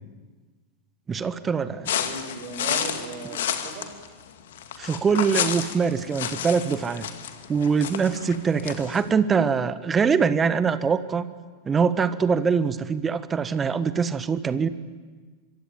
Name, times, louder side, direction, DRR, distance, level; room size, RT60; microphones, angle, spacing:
voice 1, 1.1-1.9 4.8-7.1 7.5-11.2 11.6-14.7, right 6 dB, 20° right, 13 dB, 1.4 m, -23 dB
sound 1, 1.8-9.0, left 9 dB, 60° left, 2.3 m, -30 dB
voice 2, 1.9-3.9, right 4 dB, 45° right, 6 dB, 6.4 m, -37 dB
26.0 x 24.0 x 9.6 m, 1.4 s
figure-of-eight pair, 90°, 0 cm